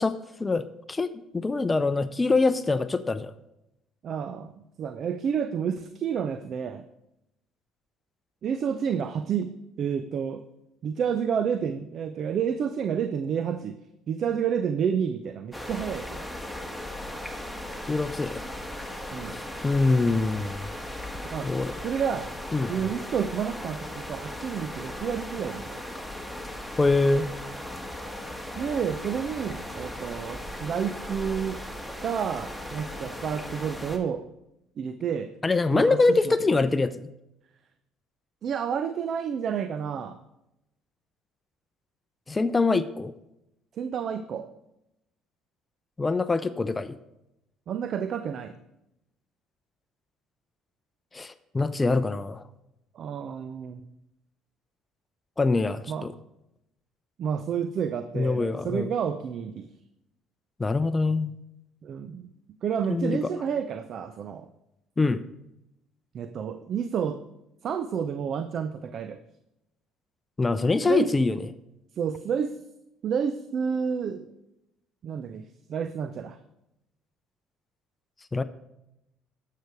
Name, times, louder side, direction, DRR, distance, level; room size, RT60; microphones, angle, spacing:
voice 1, 0.0-3.3 17.9-18.4 19.3-20.7 21.4-21.7 22.5-22.7 26.8-27.3 35.4-37.1 42.3-43.1 46.0-46.9 51.1-52.4 55.4-56.1 58.1-58.9 60.6-61.3 62.9-63.2 65.0-65.2 70.4-71.4 78.3-78.4, left 3 dB, 20° left, 13 dB, 0.6 m, -24 dB
voice 2, 4.0-6.8 8.4-10.4 10.8-13.8 14.1-16.3 19.1-19.4 21.3-21.5 21.8-22.3 22.7-25.8 28.6-31.6 32.0-34.3 34.8-35.3 35.7-36.3 38.4-40.2 43.7-44.5 47.7-48.5 52.9-53.8 55.9-56.1 57.2-59.7 61.8-62.3 62.6-64.5 66.1-67.2 67.6-69.2 70.9-71.1 72.0-72.5 73.0-74.3 75.0-75.4 75.7-76.4, right 7 dB, 55° right, 10 dB, 0.6 m, -30 dB
sound 1, 15.5-34.0, left 1 dB, ahead, 1.7 m, -37 dB
12.0 x 6.7 x 4.7 m, 0.86 s
supercardioid pair, 70°, 0 cm